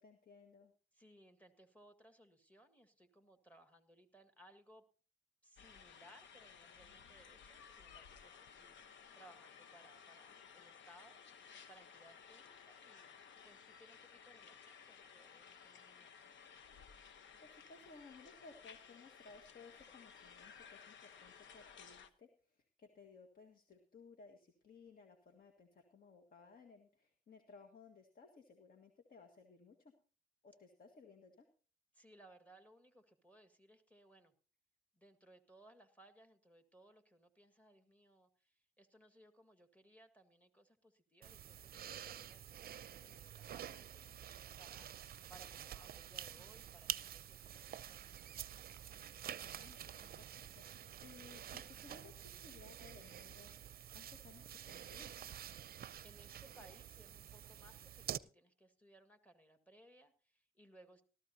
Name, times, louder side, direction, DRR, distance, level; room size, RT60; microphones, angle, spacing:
voice 1, 0.0-0.7 17.1-29.9 30.4-31.5 49.1-53.5 53.9-55.1, left 4 dB, 50° left, 5 dB, 1.8 m, -60 dB
voice 2, 0.9-4.8 5.4-11.2 11.7-16.4 31.9-34.3 34.9-48.1 56.0-61.0, right 1 dB, 5° left, 7 dB, 1.9 m, -64 dB
sound 1, 5.6-22.1, left 7 dB, 70° left, 1.1 m, -58 dB
sound 2, 41.2-58.2, right 10 dB, 50° right, 0.6 m, -49 dB
18.5 x 13.0 x 2.8 m, 0.38 s
cardioid pair, 90°, 20 cm